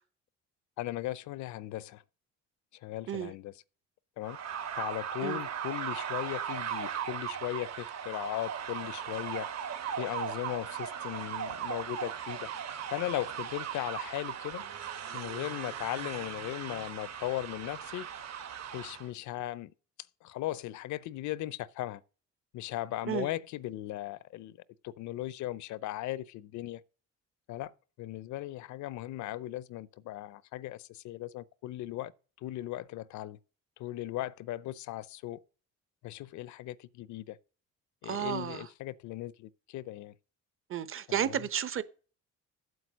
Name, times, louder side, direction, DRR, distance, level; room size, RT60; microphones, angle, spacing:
voice 1, 0.8-2.0 2.8-3.5 4.2-4.4 4.7-9.5 10.0-12.5 12.9-14.6 15.1-18.1 18.7-19.7 20.2-22.0 22.5-24.6 24.8-26.8 27.5-27.7 28.0-32.1 32.4-33.4 33.8-35.4 36.0-37.4 38.0-40.1 41.1-41.5, left 15 dB, 75° left, 0.7 m, -37 dB
sound 1, 4.2-19.1, right 8 dB, 65° right, 2.0 m, -38 dB
voice 2, 38.0-38.7 40.7-41.8, right 9 dB, 45° right, 1.0 m, -32 dB
8.0 x 7.9 x 6.2 m
cardioid pair, 95°, 29 cm